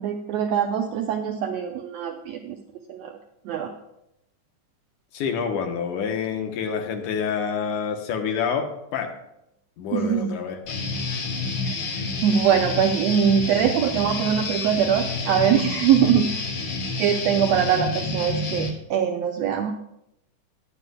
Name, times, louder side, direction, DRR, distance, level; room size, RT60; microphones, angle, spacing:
voice 1, 0.0-3.2 3.4-3.7 9.9-10.3 11.6-19.7, right 8 dB, 80° right, 5 dB, 1.5 m, -23 dB
voice 2, 5.1-9.1 9.8-10.6, left 6 dB, 80° left, 4 dB, 2.5 m, -27 dB
Guitar, 10.7-18.7, left 3 dB, 55° left, 2.2 m, -29 dB
20.5 x 8.3 x 2.3 m, 0.85 s
omnidirectional pair, 3.7 m